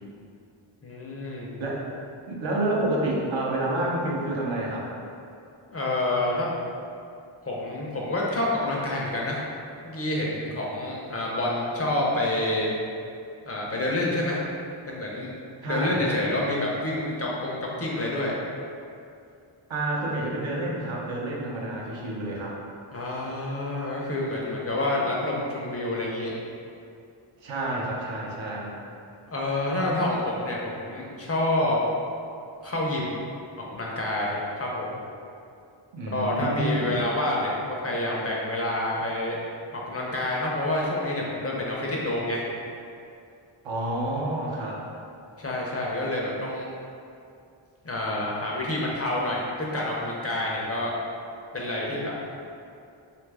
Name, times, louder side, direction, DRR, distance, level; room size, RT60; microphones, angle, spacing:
voice 1, 0.8-1.6 5.7-6.5 7.4-9.4 9.8-12.8 13.5-14.4 14.9-15.3 15.7-18.4 22.9-26.3 29.3-31.8 32.6-33.2 33.7-35.0 36.0-39.4 39.7-42.4 45.4-46.7 47.8-50.9 51.5-52.1, left 1 dB, 30° left, -4 dB, 0.5 m, -28 dB
voice 2, 2.3-4.9 15.6-16.2 19.7-22.5 27.4-28.7 35.9-37.0 43.6-44.8, right 1 dB, 70° right, -3 dB, 0.7 m, -29 dB
2.7 x 2.4 x 3.3 m, 2.5 s
cardioid pair, 80°, 49 cm